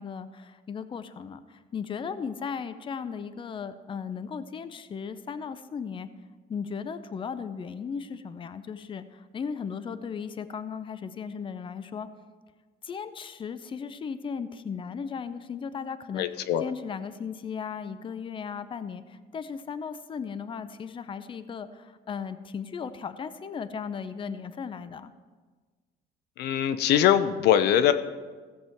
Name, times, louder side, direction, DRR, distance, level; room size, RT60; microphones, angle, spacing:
voice 1, 0.0-6.1 6.5-12.1 12.8-25.1, left 6 dB, 30° left, 13 dB, 0.6 m, -36 dB
voice 2, 16.1-16.7 26.4-27.9, left 10 dB, 75° left, 12 dB, 0.6 m, -22 dB
15.5 x 7.4 x 4.5 m, 1.4 s
cardioid pair, 110°, 17 cm